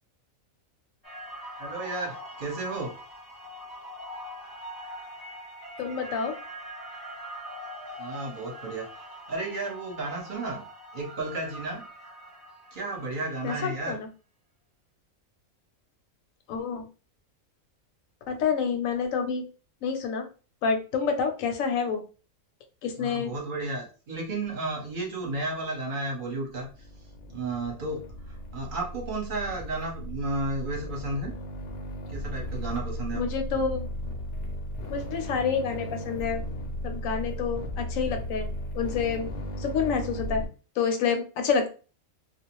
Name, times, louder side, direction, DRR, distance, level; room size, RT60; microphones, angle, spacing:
sound 1, 1.0-13.3, equal, ahead, 0.7 m, -43 dB
voice 1, 1.6-2.9 8.0-10.6 10.9-11.8 12.7-14.0 23.0-26.7 27.3-31.3 32.1-33.2, right 2 dB, 40° right, -1 dB, 0.9 m, -33 dB
voice 2, 5.8-6.3 13.4-14.1 16.5-16.9 18.3-19.4 19.8-20.3 20.6-22.0 22.8-23.3 33.1-33.9 34.9-36.4 36.8-38.5 38.7-39.3 39.6-40.4 40.8-41.7, left 6 dB, 80° left, 6 dB, 1.0 m, -28 dB
sound 2, 26.7-40.5, equal, 60° left, 0.7 m, -36 dB
2.4 x 2.0 x 2.9 m, 0.35 s
omnidirectional pair, 1.4 m